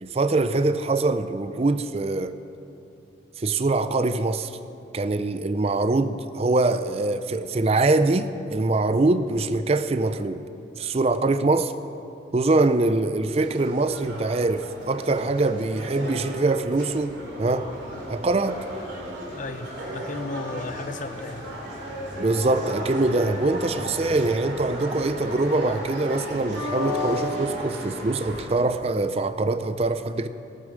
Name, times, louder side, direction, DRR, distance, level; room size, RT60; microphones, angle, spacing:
voice 1, 0.0-2.3 3.4-4.5 4.9-10.4 10.8-11.7 12.3-17.7 18.1-18.6 22.2-30.3, right 2 dB, 30° right, 0.4 m, -23 dB
sound 1, 13.3-28.4, equal, 65° right, 3.1 m, -34 dB
voice 2, 19.3-21.4, left 2 dB, 40° left, 0.7 m, -34 dB
17.5 x 8.7 x 6.4 m
head